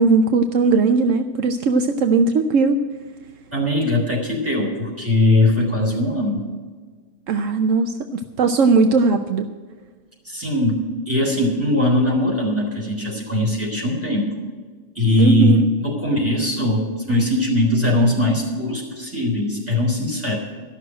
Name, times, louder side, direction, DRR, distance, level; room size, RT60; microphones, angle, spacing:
voice 1, 0.0-2.8 7.3-9.5 15.2-15.7, right 4 dB, 70° right, 7 dB, 1.0 m, -18 dB
voice 2, 3.5-6.5 10.2-14.4 14.9-20.4, left 1 dB, 10° right, -2 dB, 3.4 m, -20 dB
13.0 x 6.3 x 9.8 m, 1.5 s
omnidirectional pair, 1.4 m